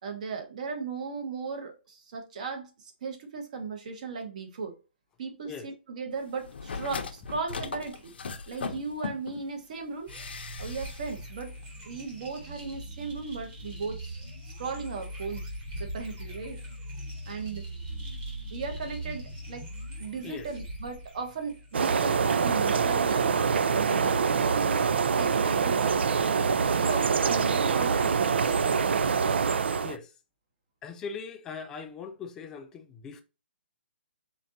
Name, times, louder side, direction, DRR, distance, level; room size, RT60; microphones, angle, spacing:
voice 1, 0.0-4.8 5.2-8.1 8.5-10.1 10.6-11.5 11.8-14.2 14.6-15.5 15.8-16.6 17.3-17.6 18.5-19.7 20.0-24.9 25.2-26.0 26.8-28.7, right 4 dB, 40° right, 1.1 m, -37 dB
sound 1, 6.4-9.4 10.1-11.1 11.4-11.5, left 5 dB, 65° left, 0.7 m, -38 dB
sound 2, 10.1-22.0, right 1 dB, 20° right, 1.3 m, -40 dB
sound 3, 21.7-30.0, right 6 dB, 70° right, 0.4 m, -25 dB
voice 2, 29.8-30.1 30.8-33.2, left 5 dB, 10° left, 0.3 m, -40 dB
4.4 x 3.8 x 2.6 m
hypercardioid pair, 170°, 6 cm